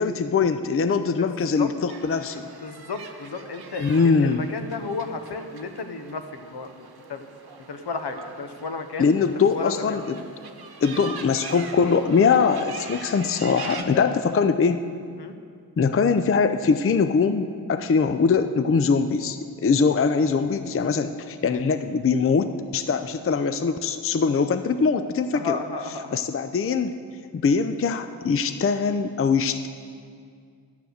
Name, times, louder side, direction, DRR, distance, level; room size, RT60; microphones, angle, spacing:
voice 1, 0.0-2.4 3.8-4.5 9.0-10.0 10.8-14.8 15.8-25.6 26.1-26.9 27.3-29.7, left 5 dB, 30° left, 10 dB, 0.5 m, -22 dB
voice 2, 1.2-1.7 2.6-7.2 7.7-9.1 9.4-10.0 13.9-14.1 15.1-15.3 21.5-21.6 25.3-26.2, left 4 dB, 65° left, 7 dB, 0.9 m, -33 dB
sound 1, 1.9-13.8, right 5 dB, 60° right, 1.0 m, -42 dB
11.0 x 6.8 x 6.5 m, 2.2 s
cardioid pair, 40°, 43 cm